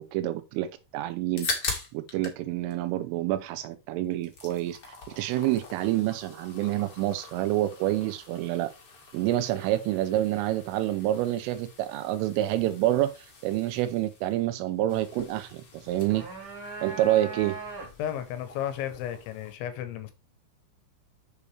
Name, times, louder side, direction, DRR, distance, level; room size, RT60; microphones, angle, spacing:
voice 1, 0.0-8.7 9.1-16.2 16.8-17.6, right 14 dB, 85° right, 3.2 m, -28 dB
sound 1, 1.1-2.4 2.7-3.7 4.0-19.5, left 4 dB, 45° left, 1.8 m, -42 dB
sound 2, 15.9-18.2, right 4 dB, 60° right, 0.9 m, -40 dB
voice 2, 18.0-20.1, left 11 dB, 75° left, 3.1 m, -33 dB
8.3 x 7.0 x 3.3 m
omnidirectional pair, 5.8 m